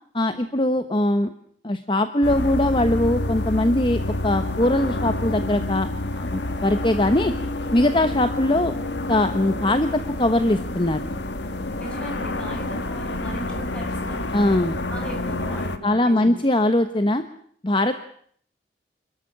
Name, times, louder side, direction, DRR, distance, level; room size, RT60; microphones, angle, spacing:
voice 1, 0.1-1.3 1.6-7.3 7.7-8.7 9.1-11.0 14.3-14.8 15.8-17.2 17.6-17.9, left 1 dB, 30° left, 9 dB, 1.1 m, -21 dB
sound 1, 2.2-15.8, left 2 dB, 85° left, 1.8 m, -28 dB
voice 2, 11.8-14.3 14.9-16.3, right 1 dB, 5° left, 1 dB, 7.7 m, -37 dB
27.5 x 13.5 x 9.9 m, 0.63 s
head